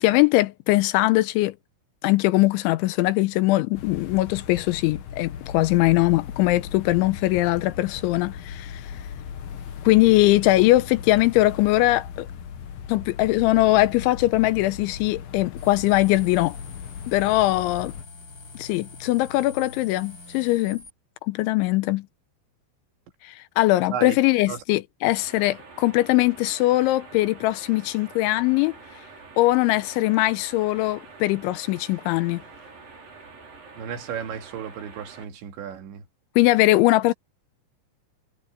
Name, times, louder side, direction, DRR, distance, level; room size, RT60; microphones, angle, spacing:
voice 1, 0.0-1.5 2.0-8.9 9.8-12.3 12.9-16.6 17.1-17.9 18.6-20.8 21.3-22.1 23.2-28.8 29.4-32.4 36.4-37.1, left 18 dB, 90° left, 3.1 m, -21 dB
sound 1, 3.7-18.0, left 8 dB, 60° left, 3.0 m, -38 dB
sound 2, 15.6-20.9, left 3 dB, 25° left, 5.7 m, -44 dB
sound 3, 25.2-35.2, right 4 dB, 45° right, 8.1 m, -46 dB
voice 2, 33.8-36.0, right 8 dB, 70° right, 4.5 m, -33 dB
omnidirectional pair, 5.4 m